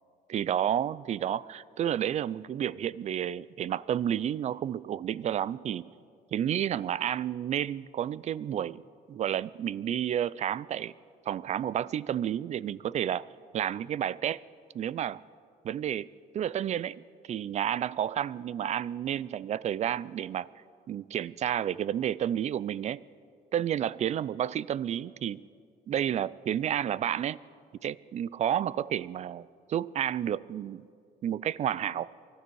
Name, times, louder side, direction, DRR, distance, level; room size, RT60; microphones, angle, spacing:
voice 1, 0.3-5.9 6.3-8.8 9.1-10.9 11.3-13.3 13.5-14.4 14.7-15.2 15.6-16.1 16.3-20.5 20.9-23.0 23.5-25.4 25.9-27.4 27.8-30.8 31.2-32.1, right 10 dB, 45° right, 20 dB, 0.4 m, -31 dB
24.0 x 12.0 x 4.7 m, 2.2 s
cardioid pair, 110°, 17 cm